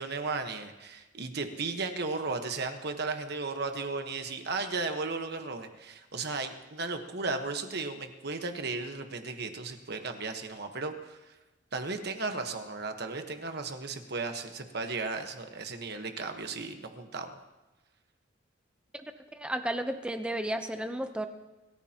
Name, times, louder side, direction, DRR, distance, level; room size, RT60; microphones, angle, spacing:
voice 1, 0.0-11.2 11.7-17.3, right 3 dB, 55° right, 6 dB, 1.3 m, -35 dB
voice 2, 19.3-21.3, right 1 dB, 5° right, 7 dB, 0.7 m, -33 dB
25.5 x 14.5 x 3.0 m, 1.1 s
head